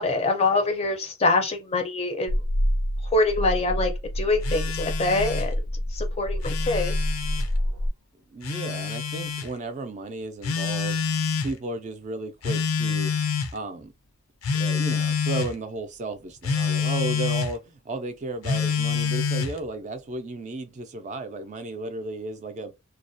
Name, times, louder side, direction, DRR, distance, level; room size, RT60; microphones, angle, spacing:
voice 1, 0.0-2.4 3.0-5.5 5.9-7.0, left 2 dB, 30° left, 0.5 m, -24 dB
sound 1, 2.3-7.9, equal, 85° right, 0.5 m, -27 dB
Telephone, 4.4-5.5 6.3-7.5 8.4-9.5 10.4-11.5 12.4-13.6 14.4-15.5 16.4-17.5 18.4-19.6, left 6 dB, 80° left, 0.5 m, -27 dB
voice 2, 8.3-11.0 11.4-13.1 13.5-13.9 14.5-22.7, right 2 dB, 35° right, 0.4 m, -34 dB
2.3 x 2.1 x 2.5 m
head